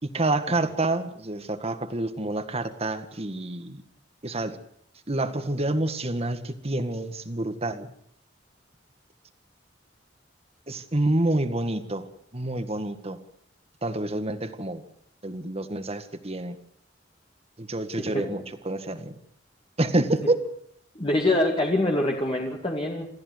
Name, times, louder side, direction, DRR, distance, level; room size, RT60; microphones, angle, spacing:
voice 1, 0.0-3.8 4.2-4.6 5.1-7.9 10.7-12.1 12.3-13.2 13.8-14.8 15.2-16.6 17.6-19.1 19.8-20.4, right 2 dB, 35° right, 9 dB, 1.9 m, -28 dB
voice 2, 20.9-23.1, left 1 dB, 30° left, 0 dB, 2.5 m, -25 dB
28.0 x 14.5 x 8.1 m, 0.70 s
head